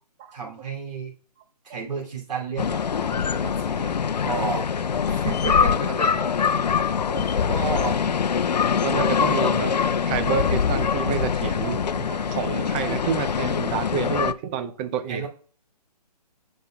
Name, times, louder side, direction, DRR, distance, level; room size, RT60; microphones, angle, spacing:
voice 1, 0.3-1.1 1.6-4.0 4.2-6.5 7.5-8.2 15.1-15.3, right 5 dB, 85° right, 2.6 m, -32 dB
sound 1, 2.6-14.3, left 6 dB, 80° left, 0.6 m, -23 dB
voice 2, 8.8-15.2, right 8 dB, 15° right, 0.4 m, -29 dB
15.0 x 5.4 x 2.2 m
hypercardioid pair, 150°, 21 cm